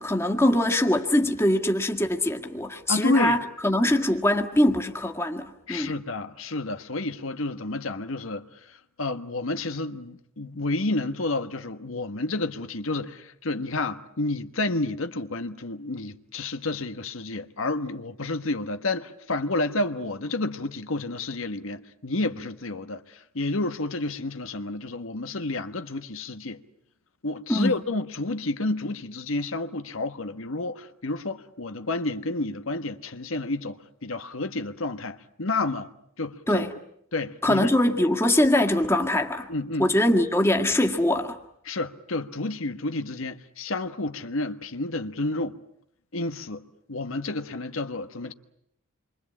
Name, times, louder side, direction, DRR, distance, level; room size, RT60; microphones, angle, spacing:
voice 1, 0.0-5.9 27.5-27.8 36.5-36.7 37.4-39.5 39.8-41.4, left 1 dB, 10° left, 1.9 m, -23 dB
voice 2, 2.9-3.4 5.7-26.6 27.2-35.9 36.2-36.6 37.1-37.7 39.5-39.9 41.6-45.6 46.1-46.6 46.9-48.3, left 2 dB, 80° left, 1.3 m, -30 dB
28.0 x 24.5 x 8.5 m
head